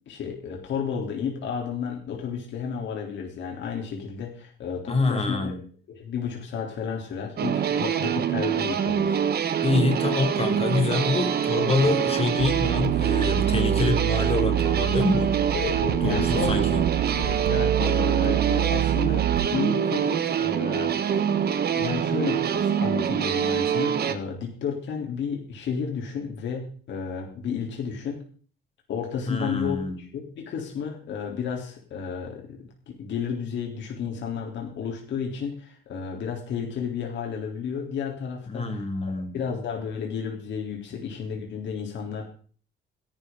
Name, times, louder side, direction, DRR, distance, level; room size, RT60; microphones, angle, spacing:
voice 1, 0.1-5.6 5.9-9.2 11.8-11.9 15.5-16.8 17.2-21.2 21.8-28.2 28.9-29.8 30.1-42.2, left 6 dB, 65° left, 0 dB, 3.6 m, -32 dB
voice 2, 4.9-5.6 9.6-15.3 16.0-16.8 29.3-29.9 38.5-39.3, left 3 dB, 30° left, 6 dB, 2.9 m, -26 dB
sound 1, 7.4-24.1, right 8 dB, 55° right, 1.5 m, -25 dB
sound 2, 12.4-19.5, right 13 dB, 85° right, 0.5 m, -27 dB
16.5 x 11.5 x 3.9 m, 0.43 s
cardioid pair, 120°, 20 cm